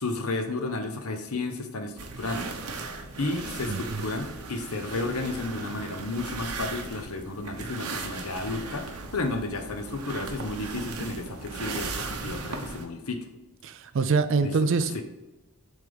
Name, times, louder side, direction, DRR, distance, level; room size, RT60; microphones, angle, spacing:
voice 1, 0.0-2.5 3.2-13.3 14.4-14.5 14.9-15.0, left 2 dB, 80° left, 6 dB, 0.9 m, -32 dB
sound 1, 2.0-12.9, right 3 dB, 90° right, 1.0 m, -37 dB
voice 2, 3.7-4.0 13.6-15.0, right 4 dB, 60° right, 11 dB, 0.4 m, -25 dB
7.4 x 3.6 x 5.1 m, 1.0 s
head